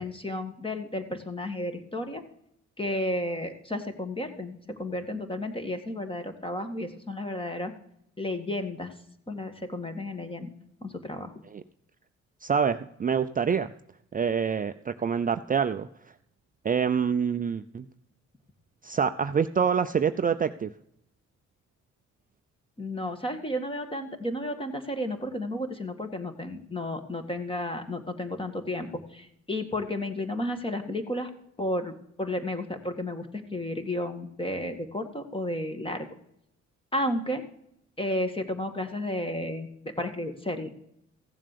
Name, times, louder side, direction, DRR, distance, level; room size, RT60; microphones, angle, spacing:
voice 1, 0.0-2.2 2.8-7.7 8.2-8.9 9.3-10.5 10.8-11.3 22.8-31.3 31.6-36.1 36.9-37.4 38.0-40.7, left 1 dB, 15° left, 7 dB, 2.0 m, -32 dB
voice 2, 12.4-13.7 14.1-15.9 16.6-17.9 18.8-20.7, right 6 dB, 30° right, 9 dB, 0.5 m, -26 dB
15.5 x 7.3 x 6.8 m, 0.75 s
cardioid pair, 90°, 30 cm